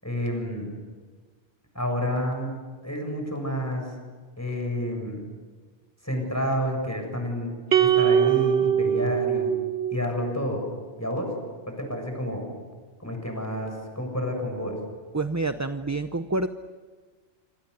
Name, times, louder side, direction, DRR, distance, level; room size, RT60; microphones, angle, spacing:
voice 1, 0.0-0.7 1.7-2.5 2.8-3.9 4.4-5.2 6.0-9.5 9.9-10.6 11.0-11.3 11.7-12.5 13.0-14.8, equal, 15° left, 3 dB, 7.4 m, -29 dB
sound 1, 7.7-10.2, right 9 dB, 60° right, 1.5 m, -22 dB
voice 2, 15.1-16.5, right 2 dB, 20° right, 9 dB, 0.7 m, -27 dB
28.0 x 26.0 x 8.2 m, 1.5 s
omnidirectional pair, 1.2 m